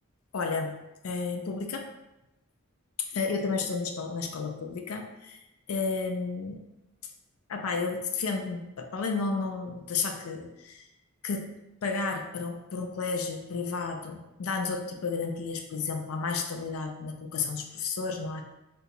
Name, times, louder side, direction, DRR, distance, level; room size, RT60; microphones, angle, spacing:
voice 1, 0.3-0.8 1.0-1.9 3.0-5.4 5.7-6.6 7.5-10.8 11.2-18.5, left 4 dB, 85° left, 4 dB, 0.4 m, -32 dB
2.8 x 2.3 x 3.9 m, 0.93 s
head